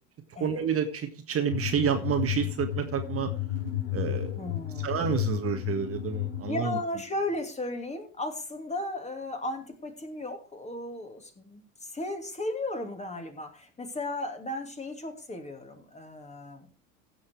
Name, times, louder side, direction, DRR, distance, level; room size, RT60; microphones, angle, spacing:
voice 1, 0.3-3.3 3.9-4.5 4.8-6.8, right 8 dB, 35° right, 6 dB, 1.7 m, -29 dB
sound 1, 1.5-6.5, left 13 dB, 80° left, 5.1 m, -32 dB
voice 2, 4.4-4.9 6.5-16.7, left 2 dB, 15° left, 5 dB, 2.8 m, -35 dB
16.0 x 6.3 x 4.6 m, 0.35 s
hypercardioid pair, 80°, 40 cm